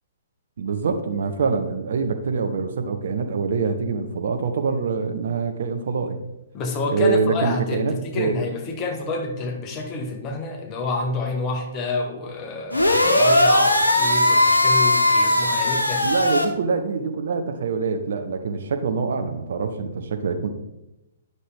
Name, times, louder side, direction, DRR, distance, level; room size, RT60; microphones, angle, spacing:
voice 1, 0.6-6.2 6.9-8.3 16.0-20.5, right 5 dB, 55° right, 7 dB, 0.9 m, -25 dB
voice 2, 6.5-16.1, left 3 dB, 25° left, 3 dB, 1.3 m, -28 dB
sound 1, 12.7-16.5, left 1 dB, 80° left, 1.0 m, -18 dB
9.6 x 6.4 x 3.5 m, 0.92 s
figure-of-eight pair, 120°, 0 cm